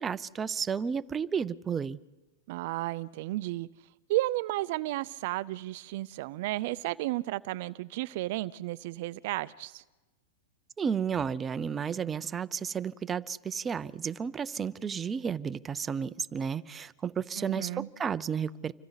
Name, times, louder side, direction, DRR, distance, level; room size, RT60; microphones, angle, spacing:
voice 1, 0.0-2.0 10.8-18.7, right 7 dB, 20° right, 0.7 m, -32 dB
voice 2, 2.5-3.7 4.1-9.8 17.4-17.9, right 17 dB, 60° right, 0.6 m, -33 dB
29.0 x 25.0 x 4.1 m
hypercardioid pair, 130°, 0 cm